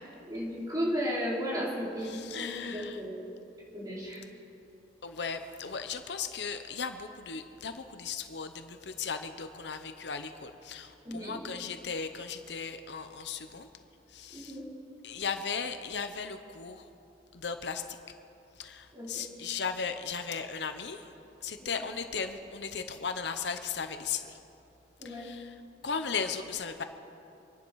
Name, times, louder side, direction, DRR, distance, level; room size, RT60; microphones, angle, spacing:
voice 1, 0.2-3.2 3.7-4.2 11.0-11.4 14.3-14.7 18.9-19.2 21.6-21.9 25.0-25.2, equal, 20° right, -4 dB, 3.4 m, -35 dB
voice 2, 2.0-3.0 5.0-13.7 14.1-14.6 15.0-16.8 17.3-18.0 18.6-21.0 21.4-24.4 25.0-25.5 25.8-26.8, left 5 dB, 65° left, 8 dB, 0.8 m, -36 dB
26.0 x 10.5 x 4.8 m, 2.7 s
head